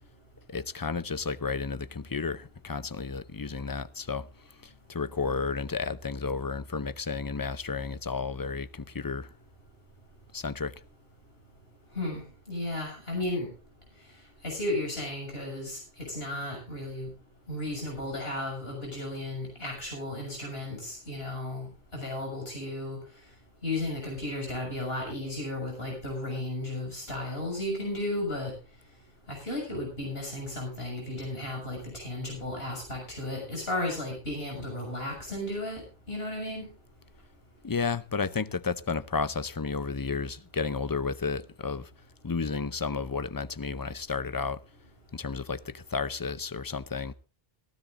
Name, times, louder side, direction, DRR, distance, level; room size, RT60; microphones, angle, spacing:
voice 1, 0.5-4.3 4.6-9.3 10.3-10.7 37.6-41.9 42.2-44.6 45.1-47.1, left 5 dB, 25° left, 0.5 m, -32 dB
voice 2, 12.5-13.5 14.4-17.1 17.5-23.0 23.6-28.5 29.3-35.8 36.1-36.6, left 1 dB, 75° left, 7.0 m, -34 dB
17.5 x 15.5 x 2.6 m
omnidirectional pair, 1.0 m